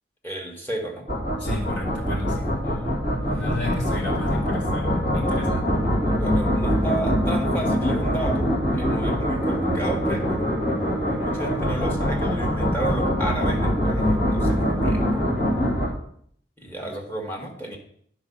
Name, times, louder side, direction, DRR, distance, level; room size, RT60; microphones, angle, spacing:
voice 1, 0.2-1.1 2.6-3.0 5.3-5.6 6.0-10.5 11.1-15.3 16.6-17.8, right 2 dB, 10° left, 1 dB, 1.7 m, -33 dB
sound 1, 1.1-15.9, equal, 45° left, 2.5 m, -23 dB
voice 2, 1.4-2.5 3.3-5.6 16.8-16.9, left 2 dB, 60° left, -2 dB, 3.4 m, -33 dB
10.0 x 4.8 x 6.8 m, 0.65 s
head